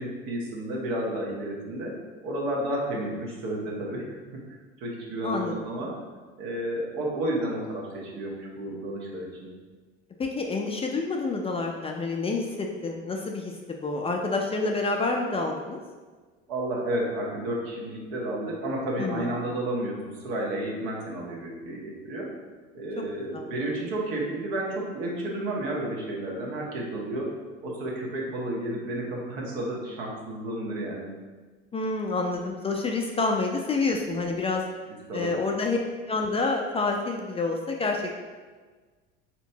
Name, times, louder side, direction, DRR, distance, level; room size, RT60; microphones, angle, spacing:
voice 1, 0.0-1.9 2.2-5.9 6.4-9.5 16.5-22.3 22.7-31.1 35.1-35.4, right 1 dB, 70° right, -3 dB, 1.1 m, -32 dB
voice 2, 5.2-5.9 10.2-13.5 13.8-15.8 19.0-19.3 23.3-23.5 31.7-34.6 35.1-35.8 36.1-38.2, left 3 dB, 20° left, 1 dB, 0.4 m, -28 dB
4.3 x 2.9 x 2.7 m, 1.4 s
hypercardioid pair, 75°, 31 cm